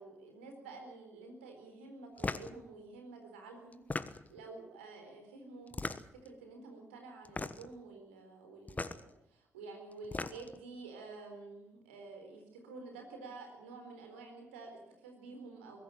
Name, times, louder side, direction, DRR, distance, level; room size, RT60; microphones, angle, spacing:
voice 1, 0.0-5.9 6.2-15.8, right 3 dB, 85° right, 3 dB, 4.0 m, -50 dB
sound 1, 2.2-2.5 3.7-4.4 5.7-6.3 7.2-7.7 8.7-9.0 9.9-10.6, left 3 dB, 25° left, 1.3 m, -38 dB
22.5 x 14.0 x 8.8 m, 0.91 s
hypercardioid pair, 40°, 6 cm